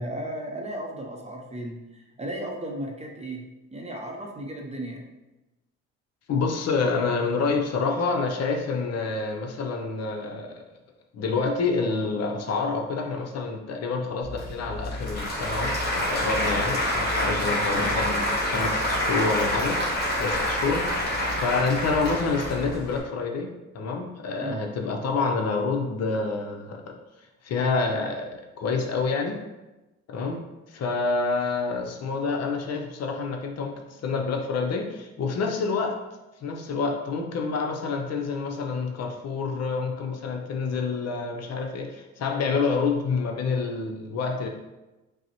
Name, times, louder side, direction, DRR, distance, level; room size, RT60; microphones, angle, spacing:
voice 1, 0.0-3.4 3.7-5.1 24.4-24.6, right 1 dB, 20° right, 0 dB, 0.6 m, -35 dB
voice 2, 6.3-10.6 11.1-23.5 23.7-26.9 27.4-29.4 30.1-30.4 30.7-36.0 36.4-44.5, left 4 dB, 55° left, 3 dB, 0.6 m, -28 dB
Applause / Crowd, 14.2-23.0, left 1 dB, 35° left, 1.3 m, -27 dB
5.1 x 2.0 x 2.9 m, 1.0 s
cardioid pair, 90°, 30 cm